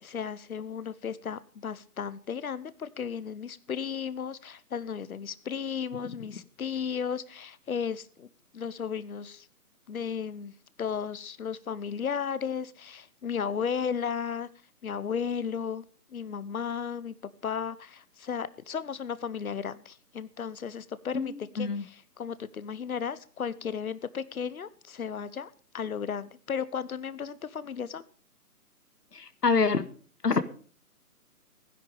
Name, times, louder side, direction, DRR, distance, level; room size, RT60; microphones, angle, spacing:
voice 1, 0.0-8.3 8.5-9.5 9.9-14.5 14.8-15.8 16.1-17.1 17.4-28.0, left 7 dB, 65° left, 17 dB, 1.1 m, -34 dB
voice 2, 21.1-21.8 29.1-29.9 30.2-30.4, left 4 dB, 85° left, 13 dB, 1.6 m, -26 dB
16.0 x 11.0 x 5.2 m, 0.43 s
figure-of-eight pair, 160°, 47 cm